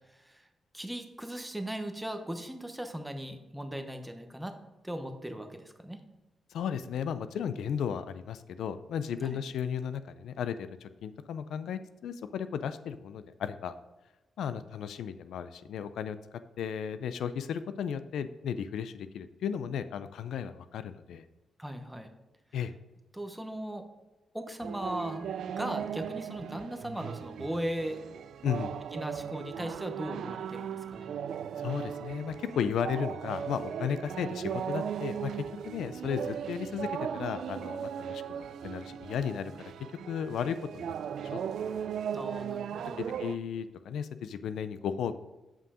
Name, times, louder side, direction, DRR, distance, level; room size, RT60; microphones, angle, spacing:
voice 1, 0.1-0.5 0.7-4.6 4.8-6.0 9.2-9.4 21.6-22.1 23.1-23.8 24.3-28.0 28.9-31.1 42.1-43.0, right 1 dB, 5° right, 6 dB, 0.9 m, -38 dB
voice 2, 6.5-13.7 14.4-16.2 16.6-21.2 22.5-22.7 28.4-28.7 31.6-35.3 35.6-39.7 40.1-40.9 41.3-41.4 43.0-45.2, left 8 dB, 90° left, 12 dB, 0.4 m, -34 dB
sound 1, 24.6-43.4, right 8 dB, 80° right, 0.3 m, -37 dB
7.5 x 5.5 x 5.0 m, 1.1 s
cardioid pair, 105°, 0 cm